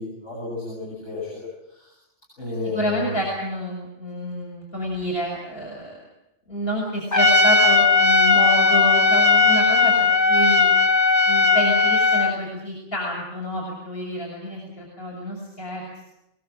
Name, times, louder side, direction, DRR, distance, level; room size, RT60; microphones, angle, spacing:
voice 1, 0.0-1.5 1.7-1.8 2.4-3.2, left 3 dB, 80° left, -5 dB, 8.4 m, -31 dB
voice 2, 2.6-5.9 6.5-10.7 11.3-16.0, equal, 50° left, -2 dB, 6.7 m, -28 dB
Trumpet, 7.1-12.4, left 4 dB, 15° left, 1.1 m, -17 dB
23.5 x 22.0 x 7.5 m, 0.86 s
omnidirectional pair, 1.2 m